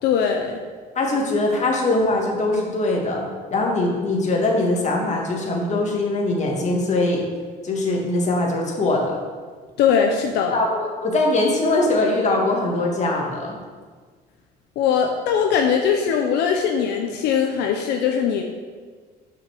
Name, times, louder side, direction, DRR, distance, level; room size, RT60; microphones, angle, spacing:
voice 1, 0.0-0.6 9.8-10.6 14.8-18.4, left 7 dB, 85° left, 3 dB, 0.7 m, -20 dB
voice 2, 1.0-7.2 7.6-9.2 10.5-13.6, left 2 dB, 45° left, -1 dB, 2.0 m, -22 dB
6.1 x 5.8 x 6.2 m, 1.5 s
cardioid pair, 110°, 17 cm